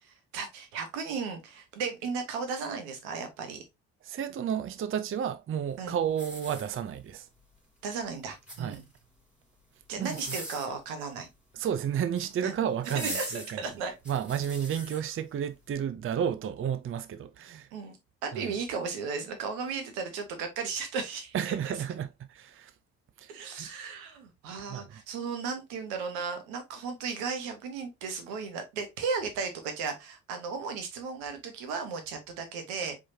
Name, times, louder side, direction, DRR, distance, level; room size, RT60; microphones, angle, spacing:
voice 1, 0.0-3.6 5.8-6.0 7.8-8.8 9.9-11.3 12.4-12.5 12.9-13.9 17.7-18.0 18.2-21.7 23.3-33.0, right 5 dB, 85° right, 1.2 m, -35 dB
voice 2, 4.0-7.3 8.6-8.8 10.0-10.2 11.5-13.6 14.1-17.7 18.3-18.6 21.3-22.7 23.2-23.7 24.7-25.0, right 8 dB, 35° right, 0.5 m, -32 dB
sound 1, 6.1-7.1 8.2-9.0 10.0-10.8 11.9-12.3 12.8-15.0 15.6-15.7, equal, 5° right, 2.7 m, -41 dB
4.7 x 4.0 x 2.7 m
hypercardioid pair, 55°, 35 cm